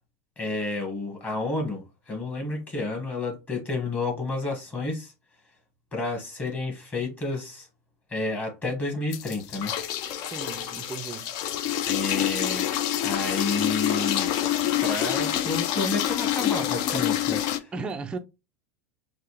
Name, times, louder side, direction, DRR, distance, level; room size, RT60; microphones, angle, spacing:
voice 1, 0.4-5.1 5.9-7.7 8.1-9.7 11.9-12.7 13.0-14.3 14.8-17.7, left 3 dB, 20° left, 1.2 m, -30 dB
sound 1, 9.1-17.6, left 11 dB, 50° left, 0.5 m, -27 dB
voice 2, 10.2-11.3 17.7-18.2, right 4 dB, 10° right, 0.3 m, -35 dB
4.9 x 2.1 x 2.9 m
supercardioid pair, 145°, 9 cm